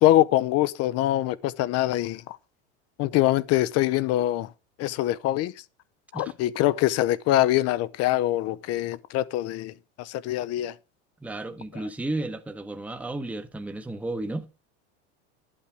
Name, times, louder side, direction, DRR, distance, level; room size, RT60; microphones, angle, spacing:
voice 1, 0.0-2.4 3.0-4.5 4.8-5.5 6.1-9.7 10.0-10.7, left 14 dB, 50° left, 0.7 m, -24 dB
voice 2, 11.2-14.5, right 2 dB, 5° right, 1.0 m, -33 dB
11.5 x 8.7 x 3.5 m
supercardioid pair, 110°, 33 cm